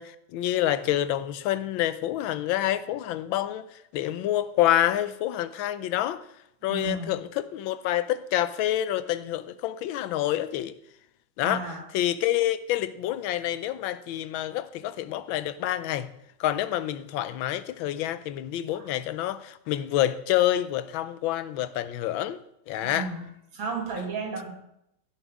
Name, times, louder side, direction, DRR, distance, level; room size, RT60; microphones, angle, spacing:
voice 1, 0.0-6.2 6.6-10.7 11.4-16.1 16.4-22.4 22.7-23.1, left 13 dB, 85° left, 1.4 m, -27 dB
voice 2, 6.7-7.2 11.4-11.8 18.7-18.9 22.8-23.2 23.5-24.5, right 4 dB, 85° right, 2.6 m, -33 dB
15.5 x 7.3 x 3.5 m
omnidirectional pair, 2.1 m